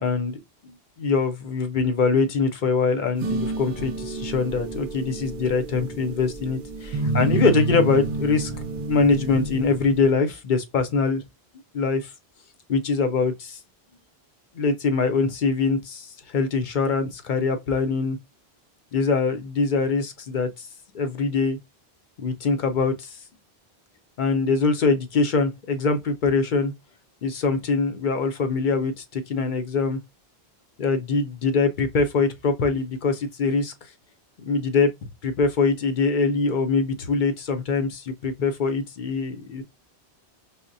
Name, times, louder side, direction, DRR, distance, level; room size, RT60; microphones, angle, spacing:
voice 1, 0.0-8.5 8.9-11.2 11.7-12.1 12.7-13.6 14.6-18.2 18.9-20.7 20.9-21.6 22.2-23.2 24.2-26.7 27.2-30.0 30.8-33.7 34.5-34.9 35.2-39.6, left 4 dB, 55° left, 0.7 m, -23 dB
sound 1, 3.2-10.1, right 3 dB, 60° right, 0.6 m, -29 dB
5.4 x 2.1 x 2.5 m
omnidirectional pair, 1.0 m